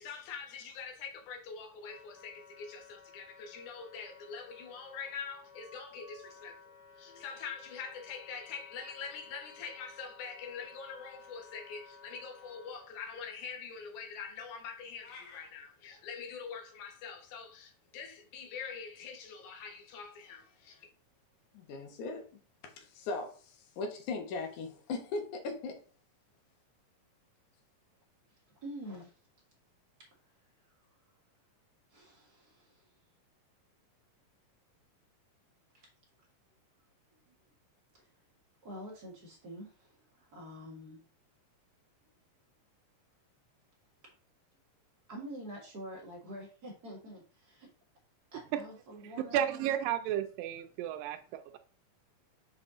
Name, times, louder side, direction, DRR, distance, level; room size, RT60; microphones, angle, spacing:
voice 1, 0.0-6.6 7.0-20.9 21.5-22.2 22.6-25.8, left 5 dB, 70° left, 3 dB, 2.5 m, -43 dB
Wind instrument woodwind instrument, 1.3-12.9, left 4 dB, 50° left, 2.9 m, -56 dB
sound 1, 15.0-15.5, left 4 dB, 90° left, 3.1 m, -50 dB
voice 2, 28.6-29.1 31.9-32.9 38.0-38.1 38.6-41.0 45.1-47.7 48.3-49.6, equal, 40° right, -1 dB, 1.5 m, -47 dB
voice 3, 49.3-51.6, right 10 dB, 90° right, 7 dB, 2.2 m, -33 dB
5.9 x 4.8 x 3.7 m, 0.39 s
omnidirectional pair, 3.9 m